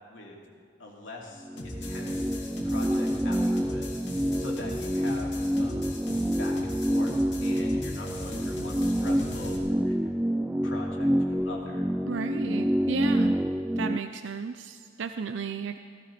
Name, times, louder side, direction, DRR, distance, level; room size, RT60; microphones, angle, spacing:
voice 1, 0.8-2.3 2.6-4.0 4.4-5.9 6.4-7.1 7.4-10.1 10.6-11.9, left 2 dB, 85° left, -2 dB, 2.8 m, -43 dB
sound 1, 1.5-14.0, equal, 5° right, 0.3 m, -27 dB
sound 2, 1.6-9.6, left 1 dB, 70° left, 2.2 m, -39 dB
voice 2, 12.1-13.4 13.8-15.8, right 5 dB, 75° right, 8 dB, 0.5 m, -33 dB
16.0 x 15.0 x 4.2 m, 2.1 s
head